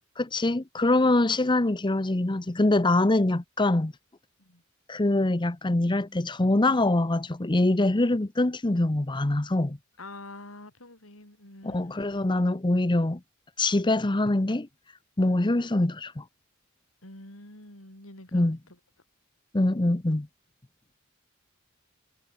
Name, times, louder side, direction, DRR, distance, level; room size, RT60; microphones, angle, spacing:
voice 1, 0.2-3.9 4.9-9.8 11.6-13.2 13.6-14.7 15.2-16.2 18.3-18.6 19.5-20.3, left 2 dB, 25° left, 0.8 m, -24 dB
voice 2, 10.0-12.0 17.0-18.5, left 2 dB, 80° left, 7.6 m, -46 dB
head